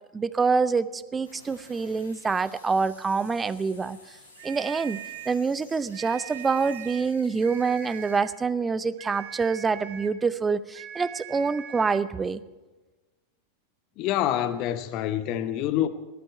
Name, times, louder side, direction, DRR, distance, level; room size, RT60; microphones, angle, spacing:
voice 1, 0.1-4.0 4.4-5.0 5.3-12.4, right 5 dB, 15° right, 0.6 m, -26 dB
sound 1, 1.2-8.2, left 2 dB, 75° left, 4.0 m, -53 dB
sound 2, 4.3-5.4 5.9-7.1 7.4-8.4 9.0-10.2 10.7-12.1, right 10 dB, 50° right, 1.6 m, -41 dB
voice 2, 14.0-15.9, left 11 dB, 40° left, 0.8 m, -26 dB
19.0 x 12.0 x 4.5 m
figure-of-eight pair, 90°, 0 cm